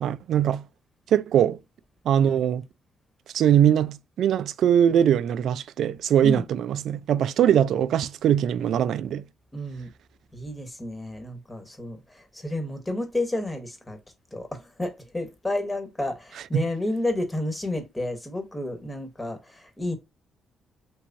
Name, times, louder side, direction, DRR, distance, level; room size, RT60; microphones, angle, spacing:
voice 1, 0.0-0.7 1.1-1.6 2.1-2.6 3.3-9.2 16.5-16.7, right 9 dB, 70° right, 0.3 m, -21 dB
voice 2, 9.5-9.9 10.3-14.0 14.3-20.0, left 1 dB, 15° left, 1.1 m, -31 dB
3.4 x 3.1 x 2.6 m
cardioid pair, 90°, 0 cm